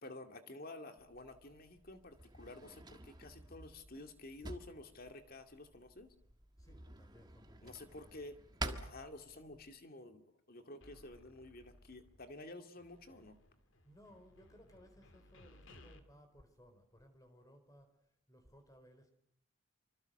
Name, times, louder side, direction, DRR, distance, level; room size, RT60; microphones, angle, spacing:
voice 1, 0.0-6.1 7.6-13.4, left 2 dB, 45° left, 6 dB, 2.3 m, -51 dB
Drawer open or close, 1.0-9.7, right 2 dB, 20° right, 1.6 m, -49 dB
voice 2, 6.6-8.2 13.8-19.1, equal, 15° left, 7 dB, 4.3 m, -62 dB
sound 1, 10.8-12.5 12.7-16.0, left 1 dB, 60° left, 2.5 m, -62 dB
25.5 x 25.0 x 6.7 m, 0.69 s
head